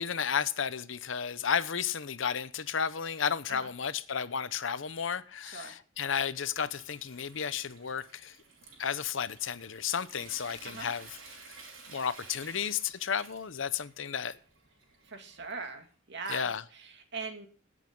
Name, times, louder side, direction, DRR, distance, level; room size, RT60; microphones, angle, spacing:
voice 1, 0.0-8.3 8.8-11.1 11.9-14.4 16.3-16.6, left 7 dB, 70° left, 0.8 m, -33 dB
voice 2, 5.4-5.8 10.6-10.9 15.1-17.5, right 4 dB, 60° right, 2.5 m, -41 dB
Water tap faucet / Sink (filling or washing) / Trickle dribble, 5.9-15.9, right 4 dB, 90° right, 5.0 m, -53 dB
18.0 x 8.2 x 3.8 m
head